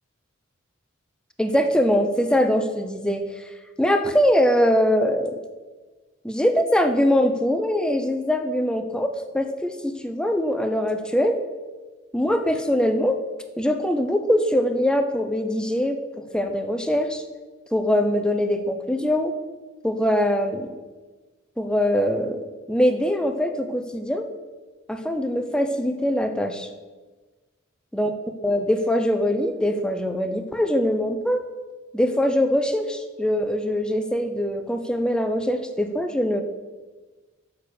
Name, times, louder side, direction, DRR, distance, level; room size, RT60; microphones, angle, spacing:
voice 1, 1.4-3.3 3.8-5.4 6.2-9.1 9.3-11.4 12.1-13.2 13.6-16.0 16.3-17.2 17.7-19.3 19.8-20.7 21.6-24.3 24.9-26.7 27.9-28.1 28.4-31.4 31.9-36.4, equal, 5° left, 7 dB, 0.5 m, -22 dB
7.0 x 6.3 x 6.8 m, 1.3 s
head